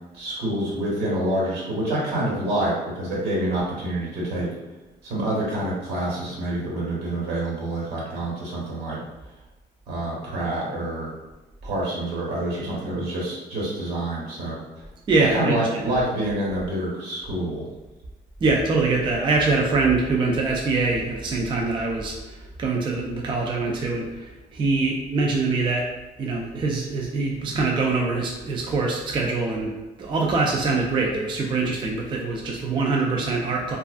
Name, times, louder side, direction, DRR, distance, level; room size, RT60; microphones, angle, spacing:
voice 1, 0.1-4.5 5.0-9.0 9.9-11.1 11.6-14.6 15.3-17.7, right 1 dB, 80° right, -5 dB, 1.2 m, -27 dB
voice 2, 15.1-16.0 18.4-25.9 26.2-33.8, right 3 dB, 30° right, -1 dB, 0.4 m, -24 dB
2.4 x 2.3 x 2.4 m, 1.1 s
cardioid pair, 110°, 17 cm